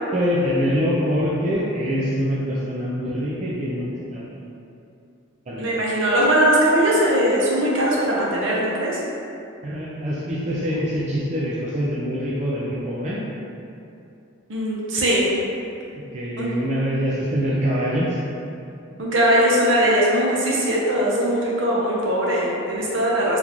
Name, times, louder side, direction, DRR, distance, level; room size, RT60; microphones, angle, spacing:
voice 1, 0.1-4.4 5.5-5.7 9.6-13.2 16.1-18.2, equal, 35° right, -7 dB, 0.3 m, -24 dB
voice 2, 5.6-9.0 14.5-15.3 16.4-16.5 19.0-23.4, right 1 dB, 65° right, -5 dB, 0.7 m, -20 dB
3.7 x 2.4 x 2.9 m, 2.6 s
head